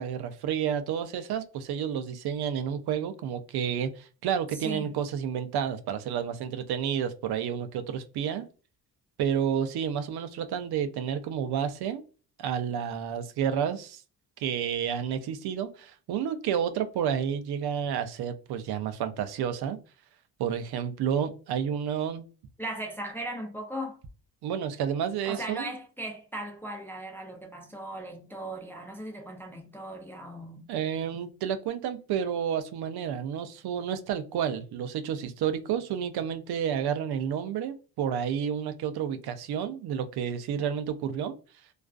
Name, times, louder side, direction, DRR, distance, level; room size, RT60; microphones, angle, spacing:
voice 1, 0.0-8.5 9.2-12.0 12.4-14.0 14.4-19.8 20.4-22.2 24.4-25.7 30.7-41.3, right 8 dB, 65° right, 0.5 m, -30 dB
voice 2, 4.5-5.0 22.6-24.0 25.3-30.7, right 1 dB, 5° left, 0.3 m, -38 dB
2.4 x 2.3 x 2.3 m
cardioid pair, 130°, 41 cm